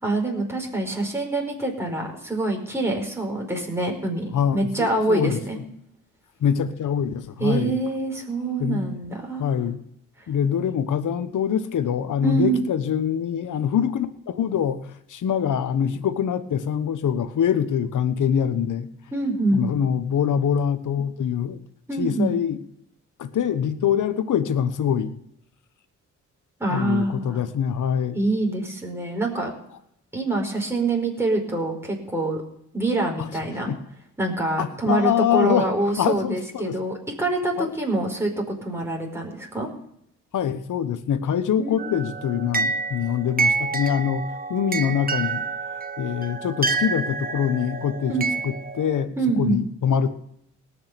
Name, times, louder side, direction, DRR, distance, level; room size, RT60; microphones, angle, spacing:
voice 1, 0.0-5.6 7.4-9.5 10.2-10.3 12.2-12.6 19.1-19.7 21.9-22.3 26.6-27.4 28.1-29.5 30.1-32.4 32.7-33.7 34.2-39.7 41.6-41.9 48.1-48.3 49.2-49.6, right 2 dB, 10° right, 0 dB, 4.8 m, -25 dB
voice 2, 4.3-5.4 6.4-7.8 8.6-8.8 9.4-9.8 10.3-18.9 19.5-21.6 22.0-22.6 23.2-25.1 26.7-28.2 33.7-33.8 34.6-35.7 36.0-36.7 37.6-37.7 40.3-45.4 46.0-48.1 48.4-49.1 49.4-50.1, left 8 dB, 70° left, 12 dB, 1.2 m, -24 dB
sound 1, 41.8-49.0, right 4 dB, 30° right, 1.3 m, -28 dB
18.5 x 6.5 x 6.9 m, 0.76 s
supercardioid pair, 55°, 32 cm